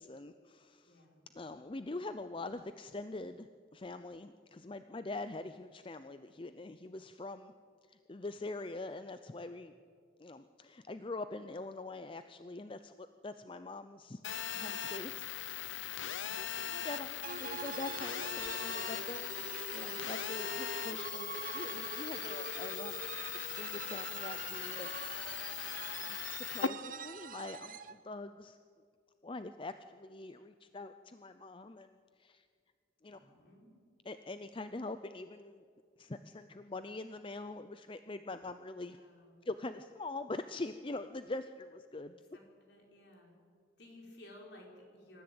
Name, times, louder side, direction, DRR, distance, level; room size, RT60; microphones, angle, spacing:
voice 1, 0.0-1.0 1.3-7.5 7.9-9.7 10.2-14.2 14.5-15.7 16.4-23.0 23.4-25.0 25.3-25.6 26.1-28.6 29.2-32.5 33.0-33.2 34.0-35.6 36.0-39.0 39.4-42.2, left 2 dB, 25° left, 10 dB, 0.5 m, -44 dB
voice 2, 0.8-1.2 16.2-16.4 33.1-33.8 38.9-39.4 42.3-43.3 43.8-45.2, left 1 dB, 60° left, 0 dB, 5.2 m, -56 dB
Telephone, 14.2-26.7, left 9 dB, 80° left, 0.7 m, -40 dB
sound 1, 17.2-28.0, right 5 dB, 45° right, 0.9 m, -44 dB
25.5 x 14.0 x 8.7 m, 2.1 s
head